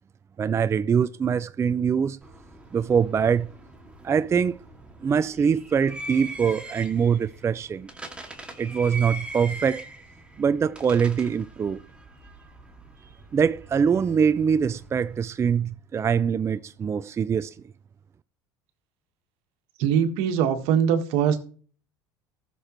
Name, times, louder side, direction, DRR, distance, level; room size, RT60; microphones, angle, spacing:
voice 1, 0.4-2.2 2.7-3.5 4.0-4.6 5.0-7.9 8.6-9.8 10.4-11.8 13.3-17.6, right 7 dB, 25° right, 0.4 m, -23 dB
sound 1, 2.2-15.3, right 1 dB, 10° right, 2.2 m, -42 dB
voice 2, 19.8-21.4, right 8 dB, 70° right, 1.5 m, -22 dB
15.0 x 6.8 x 3.1 m
hypercardioid pair, 85°, 11 cm